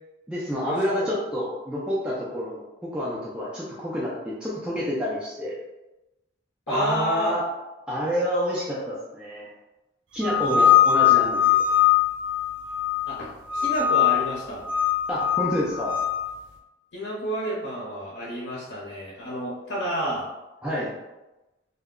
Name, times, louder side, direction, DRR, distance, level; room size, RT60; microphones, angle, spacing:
voice 1, 0.3-5.6 6.7-7.4 7.9-9.5 10.1-11.7 15.1-16.0 20.6-20.9, equal, 5° right, -7 dB, 0.4 m, -28 dB
voice 2, 6.7-7.3 10.4-10.7 11.0-11.2 13.1-13.2 13.5-14.6 16.9-20.2, right 1 dB, 75° left, -5 dB, 0.6 m, -30 dB
sound 1, 10.2-13.1 13.5-14.3 14.6-16.2, left 10 dB, 75° right, 0.4 m, -21 dB
2.2 x 2.0 x 3.5 m, 1.0 s
head